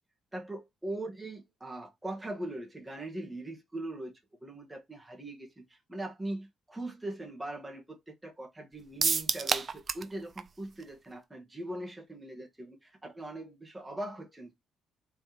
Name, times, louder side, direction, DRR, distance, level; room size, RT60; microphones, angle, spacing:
voice 1, 0.3-4.1 4.4-14.5, right 1 dB, 10° right, 1.4 m, -41 dB
sound 1, 9.0-10.1 10.4-10.5 10.8-10.9, right 5 dB, 40° right, 0.5 m, -28 dB
4.3 x 3.5 x 2.9 m
cardioid pair, 90°, 0 cm